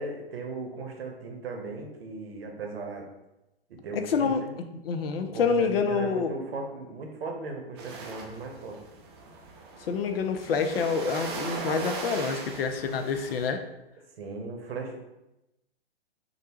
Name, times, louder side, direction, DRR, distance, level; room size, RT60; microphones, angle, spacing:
voice 1, 0.0-3.1 3.7-4.5 5.2-8.8 14.2-15.0, right 3 dB, 70° right, 3 dB, 0.8 m, -37 dB
voice 2, 3.9-4.4 4.7-6.4 9.9-13.6, left 5 dB, 65° left, 7 dB, 0.5 m, -27 dB
sound 1, 7.8-13.5, right 3 dB, 25° right, 0.4 m, -39 dB
3.2 x 2.6 x 2.8 m, 0.93 s
hypercardioid pair, 125°, 32 cm